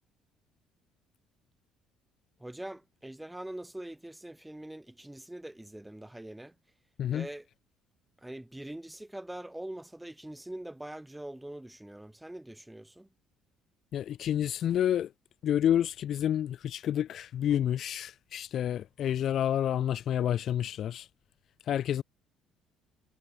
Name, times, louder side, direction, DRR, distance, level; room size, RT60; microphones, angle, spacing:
voice 1, 2.4-6.5 7.1-7.5 8.2-13.1, right 1 dB, 5° right, 5.8 m, -43 dB
voice 2, 13.9-15.1 15.4-21.1 21.7-22.0, left 10 dB, 60° left, 1.2 m, -29 dB
supercardioid pair, 80°, 0 cm